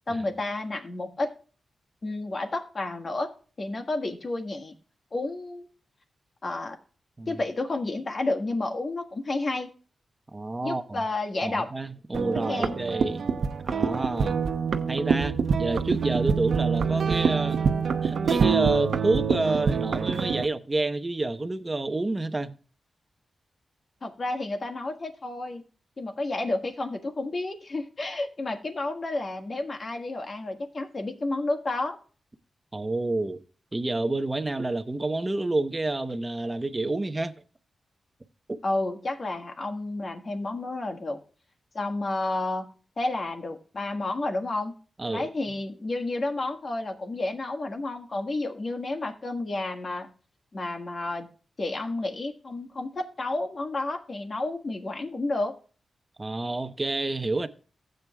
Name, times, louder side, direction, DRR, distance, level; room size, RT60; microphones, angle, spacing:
voice 1, 0.1-1.3 2.0-3.3 3.6-4.7 5.1-5.7 6.4-6.8 7.3-9.7 10.6-11.7 12.5-12.7 24.0-25.6 26.0-32.0 38.6-41.2 41.7-44.7 45.1-50.1 50.5-51.3 51.6-55.5, left 2 dB, 45° left, 1.6 m, -31 dB
voice 2, 10.3-11.0 11.4-14.4 14.9-17.6 18.0-22.6 32.7-33.4 33.7-37.3 38.5-38.6 45.0-45.3 56.2-57.5, right 2 dB, 25° right, 0.9 m, -29 dB
sound 1, 12.1-20.4, right 6 dB, 80° right, 0.8 m, -26 dB
15.5 x 7.9 x 2.3 m
wide cardioid pair, 105°, 0 cm